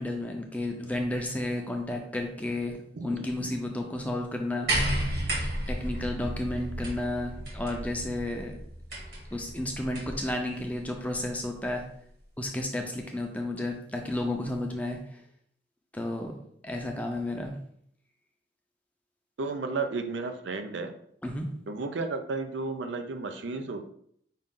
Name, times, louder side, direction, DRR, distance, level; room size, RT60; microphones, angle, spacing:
voice 1, 0.0-2.8 3.0-4.7 5.7-8.5 9.3-11.8 12.4-15.0 15.9-16.3 16.6-17.5 21.2-21.5, left 1 dB, 10° left, 2 dB, 0.5 m, -32 dB
voice 2, 2.9-3.5 19.4-20.9 21.7-23.9, right 3 dB, 80° right, 7 dB, 0.5 m, -33 dB
sound 1, 4.7-10.3 11.4-11.5, right 1 dB, 60° right, 1.6 m, -32 dB
5.5 x 2.5 x 3.7 m, 0.66 s
head